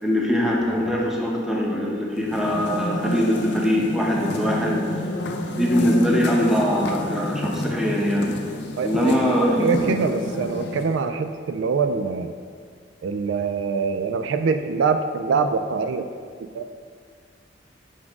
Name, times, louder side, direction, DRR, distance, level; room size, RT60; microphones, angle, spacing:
voice 1, 0.0-4.8 5.4-8.3 8.8-9.9, equal, 5° right, -3 dB, 0.9 m, -22 dB
sound 1, 2.1-11.1, left 1 dB, 65° left, 0.6 m, -30 dB
voice 2, 8.8-9.2 9.6-12.3 13.0-16.1 16.5-16.7, right 5 dB, 75° right, 8 dB, 0.3 m, -24 dB
7.2 x 4.8 x 3.6 m, 2.1 s
head